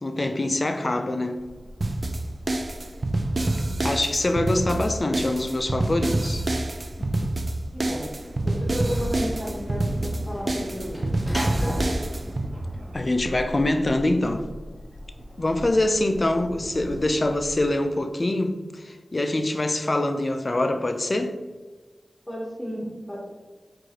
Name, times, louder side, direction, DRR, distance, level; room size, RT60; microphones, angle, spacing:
voice 1, 0.0-1.4 3.8-6.5 7.0-7.3 12.9-14.5 15.4-21.3, left 1 dB, 45° left, 0.4 m, -24 dB
sound 1, 1.3-17.7, equal, 85° right, 0.9 m, -42 dB
sound 2, 1.8-12.5, right 2 dB, 55° right, 0.3 m, -27 dB
voice 2, 7.7-8.1 8.4-11.2 11.6-12.1 22.3-23.2, equal, 20° left, 1.0 m, -33 dB
Sliding door / Slam, 8.0-13.4, equal, ahead, 0.8 m, -35 dB
4.6 x 2.5 x 2.8 m
cardioid pair, 45°, 0 cm